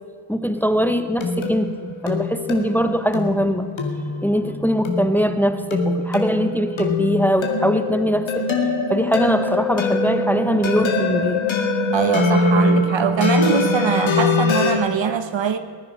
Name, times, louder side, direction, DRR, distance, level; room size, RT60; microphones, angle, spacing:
voice 1, 0.3-3.7 4.2-8.4 8.9-11.4, equal, 5° left, 1.0 m, -21 dB
sound 1, 0.5-14.7, left 2 dB, 75° left, 2.3 m, -23 dB
voice 2, 11.9-15.6, right 6 dB, 70° right, 1.3 m, -22 dB
20.5 x 9.9 x 5.8 m
cardioid pair, 65°, 47 cm